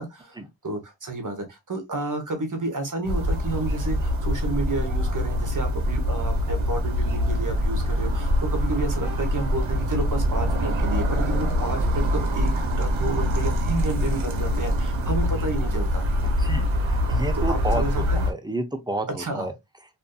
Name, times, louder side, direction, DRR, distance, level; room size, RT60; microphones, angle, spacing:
voice 1, 0.0-16.1 17.5-18.2 19.2-19.5, right 2 dB, 40° right, 0.9 m, -31 dB
sound 1, 3.0-18.3, equal, 75° right, 0.7 m, -24 dB
voice 2, 16.4-17.8 18.1-19.5, right 1 dB, 10° right, 0.5 m, -30 dB
2.5 x 2.5 x 2.2 m
wide cardioid pair, 65°, 47 cm